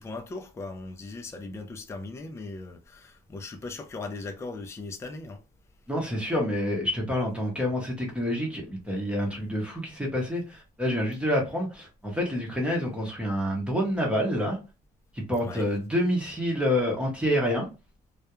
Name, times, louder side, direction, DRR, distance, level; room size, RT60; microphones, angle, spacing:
voice 1, 0.0-5.4 15.4-15.7, left 3 dB, 15° left, 0.4 m, -38 dB
voice 2, 5.9-14.6 15.1-17.7, equal, 5° right, 0.8 m, -28 dB
2.3 x 2.1 x 2.9 m
cardioid pair, 110°, 17 cm